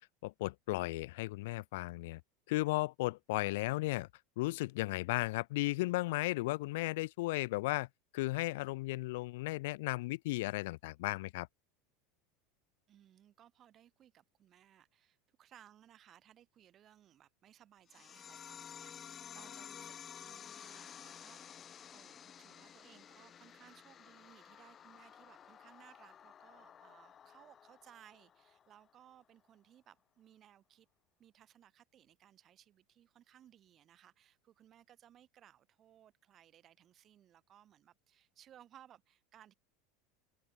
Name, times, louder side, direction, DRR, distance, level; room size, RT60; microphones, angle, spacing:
voice 1, 0.2-2.2 2.5-4.1 4.4-7.9 8.1-11.5, left 20 dB, 70° left, 0.3 m, -35 dB
voice 2, 12.9-30.9 31.2-39.5, right 11 dB, 40° right, 2.9 m, -62 dB
sound 1, 17.9-28.9, left 8 dB, 35° left, 0.6 m, -53 dB
open air
hypercardioid pair, 85°, 0 cm